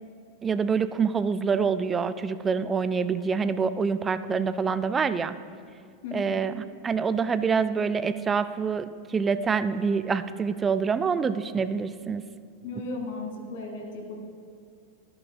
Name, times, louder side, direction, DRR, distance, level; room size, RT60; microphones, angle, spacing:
voice 1, 0.4-5.3 6.1-12.2, right 5 dB, 20° right, 13 dB, 0.3 m, -26 dB
voice 2, 6.0-6.5 12.6-14.2, left 3 dB, 55° left, 1 dB, 1.7 m, -36 dB
15.0 x 7.9 x 2.2 m, 2.3 s
figure-of-eight pair, 90°, 0 cm